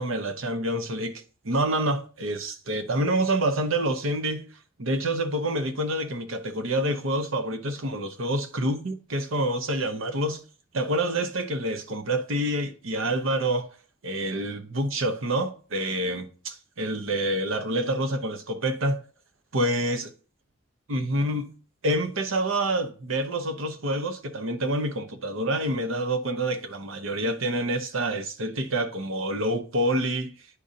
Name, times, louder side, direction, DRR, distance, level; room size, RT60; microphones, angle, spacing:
voice 1, 0.0-4.4 4.8-10.4 10.7-13.7 14.0-19.0 19.5-20.1 20.9-21.5 21.8-30.3, right 1 dB, 80° right, 0.9 m, -27 dB
9.8 x 5.1 x 2.7 m
head